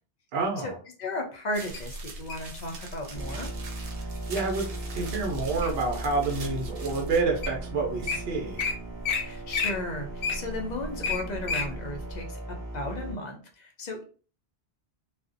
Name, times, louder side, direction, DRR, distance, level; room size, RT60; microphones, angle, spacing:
voice 1, 0.3-0.7 4.3-4.7 4.9-8.6, right 3 dB, 70° right, 0 dB, 0.8 m, -28 dB
voice 2, 1.0-3.5 9.2-14.0, left 2 dB, 55° left, 2 dB, 0.5 m, -35 dB
sound 1, 1.5-7.2, right 3 dB, 50° right, 0.5 m, -45 dB
Wild animals, 1.7-2.5 3.2-3.5 4.0-4.4 4.9-5.9 6.5-6.6 7.2-7.3 7.4-7.6 7.9-8.2 8.6-8.7 9.0-9.2 9.5-11.7 12.1-12.2, left 4 dB, 85° left, 0.9 m, -30 dB
sound 2, 3.1-13.1, right 1 dB, 20° left, 0.8 m, -38 dB
2.4 x 2.1 x 2.4 m, 0.39 s
omnidirectional pair, 1.1 m